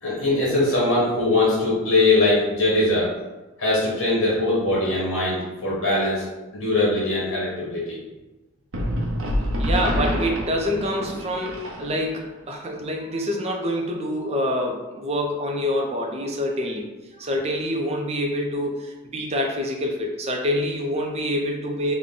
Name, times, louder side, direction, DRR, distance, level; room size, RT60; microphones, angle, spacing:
voice 1, 0.0-3.2 3.6-6.3 6.5-8.0, left 2 dB, 80° left, -6 dB, 1.1 m, -21 dB
sound 1, 8.7-12.3, equal, 70° right, 0.6 m, -26 dB
voice 2, 9.6-16.9 17.2-21.9, equal, 30° right, 1 dB, 0.5 m, -26 dB
3.6 x 2.2 x 3.7 m, 1.1 s
head